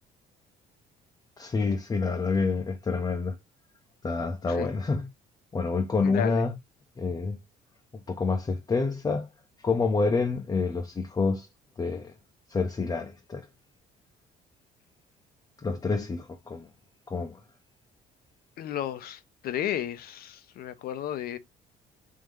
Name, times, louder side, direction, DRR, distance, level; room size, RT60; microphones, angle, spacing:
voice 1, 1.4-3.4 4.0-5.1 5.5-6.6 7.0-7.4 7.9-9.3 9.6-11.5 11.8-12.1 12.5-13.5 15.6-16.7 17.1-17.4, left 4 dB, 20° left, 0.6 m, -28 dB
voice 2, 6.0-6.4 18.6-21.4, left 11 dB, 60° left, 0.7 m, -33 dB
3.7 x 2.7 x 3.1 m
cardioid pair, 110°, 17 cm